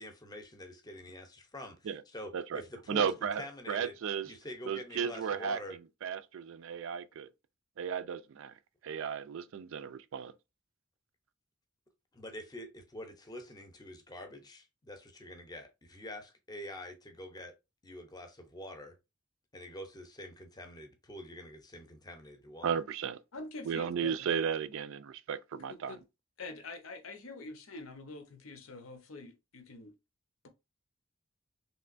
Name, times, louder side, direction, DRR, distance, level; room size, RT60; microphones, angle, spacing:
voice 1, 0.0-4.0 4.2-5.8 12.1-17.5 17.8-19.0 19.5-22.8, left 1 dB, 20° left, 0.6 m, -46 dB
voice 2, 2.9-4.3 4.7-5.6 6.0-7.3 7.8-8.5 8.8-10.3 22.6-23.2 23.7-26.0, right 7 dB, 65° right, 0.3 m, -34 dB
voice 3, 23.3-24.3 25.5-26.0 26.4-29.9, left 3 dB, 85° left, 0.7 m, -46 dB
3.2 x 2.9 x 2.5 m
head